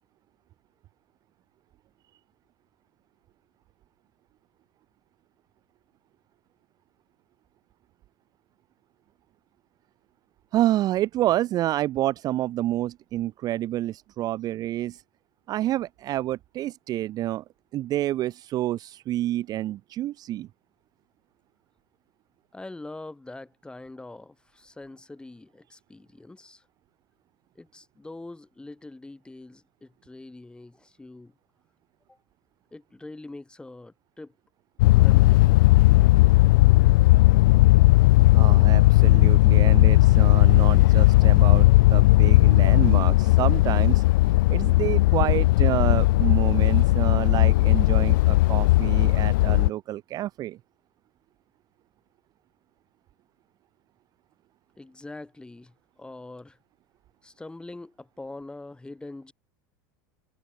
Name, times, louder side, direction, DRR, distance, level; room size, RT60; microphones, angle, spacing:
voice 1, 10.5-15.0 15.5-17.4 17.7-20.5 38.3-44.0 44.5-50.6, right 14 dB, 40° right, 0.4 m, -28 dB
voice 2, 22.5-26.7 27.5-31.3 32.1-32.2 32.7-34.3 34.9-35.7 54.8-56.6 57.2-59.3, left 2 dB, 10° left, 3.3 m, -43 dB
sound 1, 34.8-49.7, left 19 dB, 75° left, 0.4 m, -17 dB
supercardioid pair, 105°, 10 cm